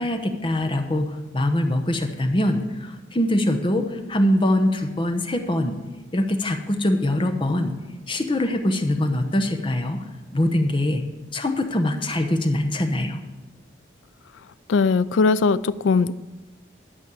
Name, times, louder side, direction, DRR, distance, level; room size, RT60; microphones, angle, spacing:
voice 1, 0.0-5.8 6.1-7.7 8.1-10.0 10.3-11.0 11.3-13.2, left 1 dB, 25° left, 5 dB, 0.8 m, -23 dB
voice 2, 14.7-16.1, left 4 dB, 85° left, 17 dB, 0.4 m, -19 dB
11.5 x 5.2 x 8.3 m, 1.1 s
head